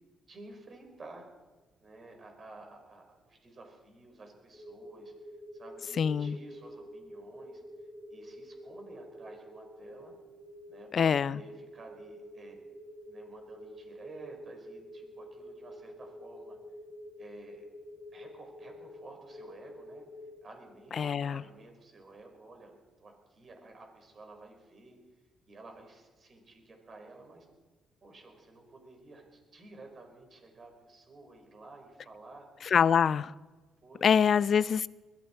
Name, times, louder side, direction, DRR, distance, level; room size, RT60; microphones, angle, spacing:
voice 1, 0.3-1.2 1.8-10.1 10.7-12.6 13.1-16.6 17.2-17.7 18.1-20.1 20.4-25.0 25.5-27.5 28.0-32.5 33.8-34.5, right 2 dB, 40° right, 5.0 m, -52 dB
sound 1, 4.5-20.4, equal, 5° left, 5.0 m, -48 dB
voice 2, 6.0-6.4 10.9-11.4 21.0-21.4 32.7-33.3 34.0-34.9, left 7 dB, 55° left, 0.4 m, -25 dB
21.5 x 14.0 x 4.6 m
cardioid pair, 90°, 0 cm